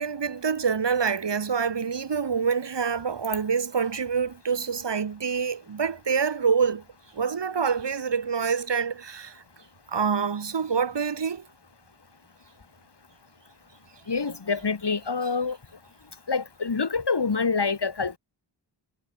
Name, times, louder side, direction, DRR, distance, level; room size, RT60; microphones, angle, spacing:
voice 1, 0.0-6.8 7.1-9.4 9.9-11.4, right 6 dB, 75° right, 2.2 m, -26 dB
voice 2, 14.1-15.6 16.3-18.2, left 4 dB, 70° left, 6.1 m, -26 dB
wide cardioid pair, 65°, 43 cm